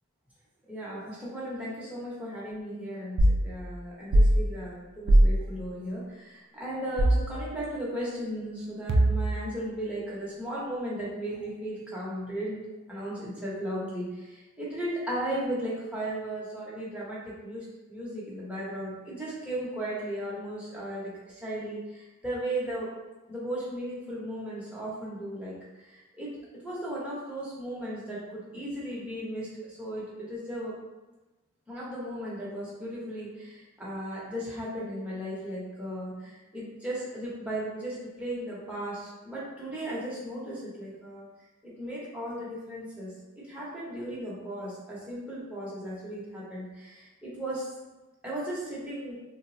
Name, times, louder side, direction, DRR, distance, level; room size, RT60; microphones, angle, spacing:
voice 1, 0.7-12.6 12.9-22.9 23.3-25.6 25.9-26.3 26.6-30.7 31.7-41.2 41.6-47.7 48.2-49.1, right 1 dB, 5° right, -8 dB, 0.8 m, -36 dB
sound 1, 3.2-3.4 4.1-4.4 5.1-5.3 7.0-7.3 8.9-9.4, right 1 dB, 55° right, 0.3 m, -20 dB
3.4 x 2.0 x 2.6 m, 1.1 s
head